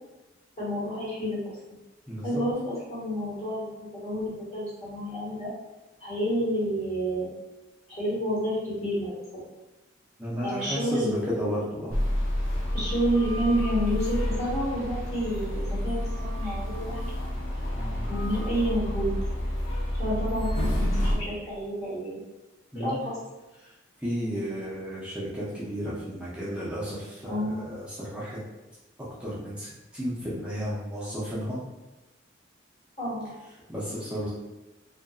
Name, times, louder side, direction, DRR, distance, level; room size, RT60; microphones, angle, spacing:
voice 1, 0.6-1.4 1.7-1.8 2.2-5.5 6.0-7.3 7.9-9.1 10.4-11.2 12.7-17.1 18.1-19.1 20.0-22.2 22.7-23.2 27.3-27.6 33.0-33.3, equal, 35° left, -8 dB, 1.2 m, -29 dB
voice 2, 2.1-2.4 10.2-12.0 17.8-18.1 22.7-23.0 24.0-28.4 29.2-31.6 33.7-34.3, equal, 5° right, -9 dB, 0.5 m, -33 dB
sound 1, 11.9-21.1, left 1 dB, 80° left, 0.6 m, -29 dB
2.7 x 2.5 x 2.3 m, 1.1 s
head